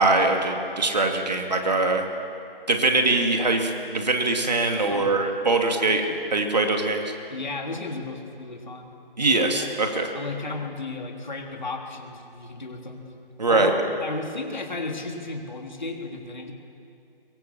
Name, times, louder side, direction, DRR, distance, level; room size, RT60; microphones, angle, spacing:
voice 1, 0.0-2.1 2.7-6.0 6.3-7.0 9.2-10.1 13.4-13.7, right 2 dB, 45° right, 3 dB, 2.6 m, -22 dB
voice 2, 4.9-5.2 7.3-8.9 9.6-9.7 10.1-13.1 13.5-16.5, left 3 dB, 50° left, 2 dB, 3.3 m, -34 dB
24.0 x 23.5 x 7.3 m, 2.6 s
figure-of-eight pair, 170°, 29 cm